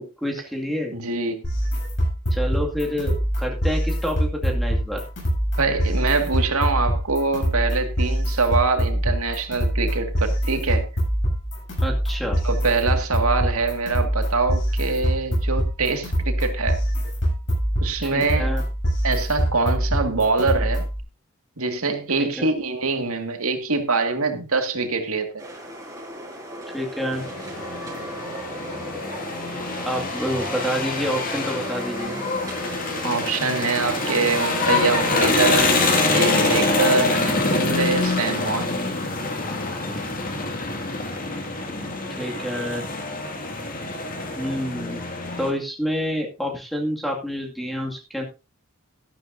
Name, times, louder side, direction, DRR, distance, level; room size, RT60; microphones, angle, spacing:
voice 1, 0.0-0.9 2.3-5.0 11.8-12.4 18.0-18.6 22.2-22.5 26.7-27.2 29.8-32.1 42.1-42.8 44.4-45.0 45.4-48.2, equal, ahead, 0 dB, 2.2 m, -28 dB
voice 2, 0.9-1.5 5.6-10.8 12.4-16.8 17.8-18.5 19.0-20.8 21.6-25.4 33.0-38.7, right 4 dB, 75° right, 6 dB, 2.1 m, -24 dB
sound 1, 1.4-21.0, equal, 60° left, 7.4 m, -24 dB
sound 2, 25.4-36.7, right 1 dB, 15° right, 5.3 m, -36 dB
sound 3, 27.1-45.5, left 3 dB, 40° left, 2.2 m, -25 dB
13.0 x 12.0 x 2.7 m, 0.29 s
head